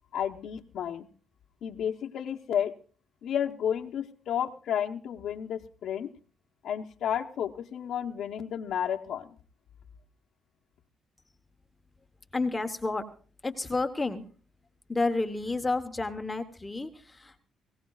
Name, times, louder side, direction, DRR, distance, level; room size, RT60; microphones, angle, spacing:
voice 1, 0.1-1.1 1.6-2.7 3.2-6.1 6.6-9.3, left 9 dB, 75° left, 0 dB, 0.9 m, -32 dB
voice 2, 12.3-13.0 13.4-14.2 14.9-17.4, left 3 dB, 15° left, 6 dB, 1.1 m, -30 dB
23.0 x 16.5 x 2.4 m, 0.41 s
cardioid pair, 100°, 0 cm